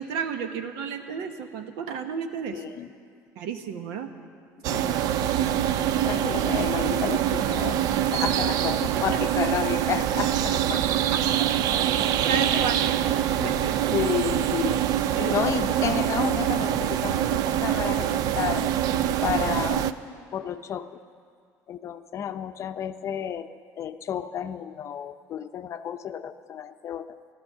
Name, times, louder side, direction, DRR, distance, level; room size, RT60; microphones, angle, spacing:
voice 1, 0.0-2.6 3.4-4.1 9.0-9.2 10.7-10.8 11.1-11.2 12.0-12.7 13.4-14.0 15.1-15.4, right 6 dB, 85° right, 7 dB, 1.1 m, -32 dB
voice 2, 2.5-2.9 4.7-5.6 6.1-7.8 8.1-10.8 12.5-12.6 13.4-13.6 13.9-14.8 15.2-18.7 19.2-20.0 20.3-21.0 21.7-23.5 23.8-27.2, left 9 dB, 45° left, 10 dB, 0.6 m, -31 dB
sound 1, 4.6-19.9, right 11 dB, 65° right, 0.5 m, -24 dB
13.0 x 12.5 x 6.8 m, 2.2 s
cardioid pair, 115°, 7 cm